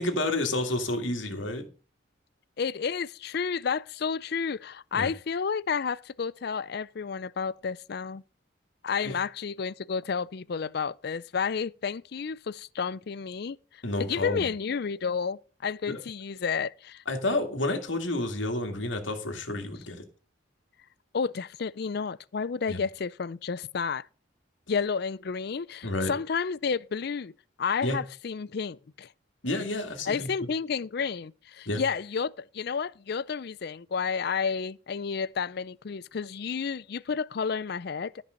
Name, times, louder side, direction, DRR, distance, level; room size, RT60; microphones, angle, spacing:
voice 1, 0.0-1.6 4.9-5.1 9.0-9.1 13.8-14.5 15.9-16.0 17.1-20.0 22.7-22.8 25.8-26.1 27.8-28.0 29.4-30.3 31.7-31.8, left 2 dB, 75° left, 2.2 m, -30 dB
voice 2, 2.6-8.2 8.8-13.6 14.0-17.0 21.1-24.1 24.7-27.3 27.6-29.1 30.1-38.2, left 5 dB, 55° left, 0.4 m, -31 dB
13.5 x 5.5 x 6.4 m
head